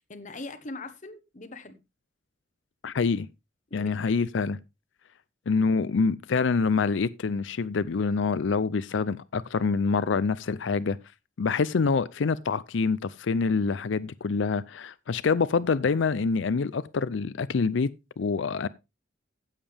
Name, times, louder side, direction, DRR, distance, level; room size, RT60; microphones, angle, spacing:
voice 1, 0.0-1.8 3.7-4.0, left 2 dB, 40° left, 1.0 m, -41 dB
voice 2, 2.8-3.3 3.7-4.6 5.5-11.0 11.4-17.9 18.2-18.7, left 4 dB, 70° left, 0.5 m, -26 dB
16.0 x 7.4 x 3.4 m
head